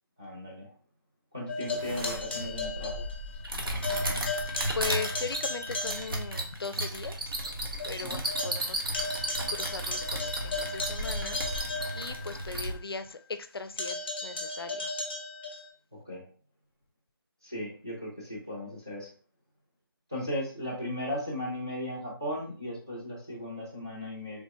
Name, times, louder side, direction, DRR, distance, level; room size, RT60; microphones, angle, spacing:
voice 1, 0.2-0.7 1.3-3.1 8.0-8.2 15.9-16.3 17.4-19.1 20.1-24.4, left 1 dB, 10° right, 0.3 m, -36 dB
sound 1, 1.5-3.5 3.8-6.5 6.9-7.0 7.4-7.5 7.8-12.6 13.8-15.7, left 3 dB, 30° left, 0.6 m, -36 dB
sound 2, 1.7-12.7, right 1 dB, 70° right, 0.7 m, -34 dB
voice 2, 4.7-7.4 7.8-8.8 9.5-14.9, left 4 dB, 80° left, 0.4 m, -38 dB
3.3 x 2.1 x 2.6 m
figure-of-eight pair, 170°, 12 cm